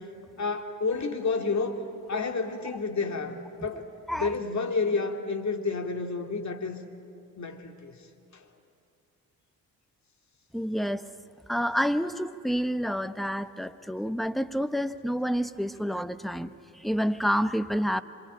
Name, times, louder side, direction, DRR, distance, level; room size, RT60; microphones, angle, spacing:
voice 1, 0.4-1.7 2.1-3.4 3.6-3.9 4.1-6.8 7.4-8.0 8.3-8.5, left 4 dB, 40° left, 4 dB, 2.7 m, -30 dB
voice 2, 10.5-11.0 11.5-18.0, equal, ahead, 11 dB, 1.1 m, -28 dB
26.0 x 23.0 x 8.9 m, 2.4 s
hypercardioid pair, 40°, 44 cm